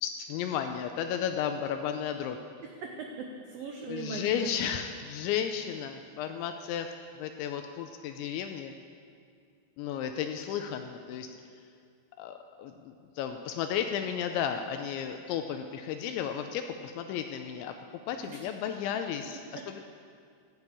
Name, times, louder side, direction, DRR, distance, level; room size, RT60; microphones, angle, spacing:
voice 1, 0.0-2.4 3.9-6.9 7.2-8.7 9.8-11.3 12.2-17.7 18.1-19.8, left 8 dB, 85° left, 6 dB, 2.9 m, -33 dB
voice 2, 2.8-4.5 18.3-18.4 19.5-19.8, right 4 dB, 80° right, 2 dB, 2.0 m, -39 dB
14.5 x 10.5 x 8.4 m, 2.3 s
omnidirectional pair, 5.6 m